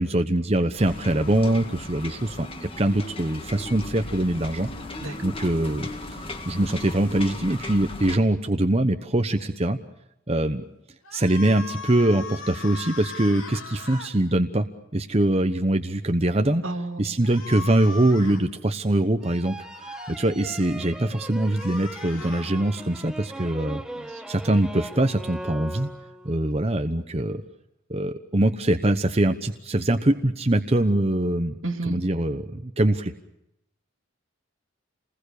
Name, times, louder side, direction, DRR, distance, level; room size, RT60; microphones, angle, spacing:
voice 1, 0.0-4.7 5.2-9.8 10.3-10.6 11.1-14.7 14.9-16.6 17.0-23.8 24.3-25.9 26.2-27.4 27.9-31.6 31.9-33.1, right 1 dB, 30° right, 6 dB, 1.0 m, -23 dB
sound 1, 0.8-8.2, left 2 dB, 25° left, 1.9 m, -37 dB
sound 2, 11.0-14.1 17.2-18.4 19.6-20.2 21.3-22.5, left 4 dB, 85° left, 4.0 m, -39 dB
voice 2, 16.6-17.2 24.0-24.2 31.6-32.0, right 2 dB, 75° right, 6 dB, 2.5 m, -32 dB
sound 3, 19.2-26.4, right 1 dB, 5° right, 1.1 m, -39 dB
28.5 x 20.5 x 6.7 m, 0.83 s
head